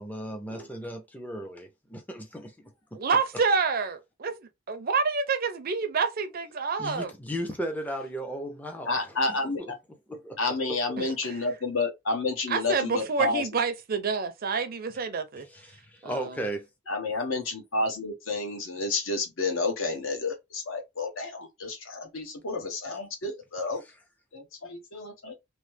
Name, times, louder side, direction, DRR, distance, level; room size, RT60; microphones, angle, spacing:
voice 1, 0.0-3.0 6.8-9.7 10.1-10.8 15.5-16.7 22.9-23.0, right 1 dB, 10° left, 0.4 m, -36 dB
voice 2, 2.9-7.1 11.0-11.5 12.5-15.5 16.0-16.4, right 5 dB, 45° right, 0.5 m, -28 dB
voice 3, 8.9-9.6 10.4-13.4 16.9-23.8 24.3-25.3, left 3 dB, 75° left, 1.0 m, -30 dB
3.0 x 2.0 x 3.2 m
head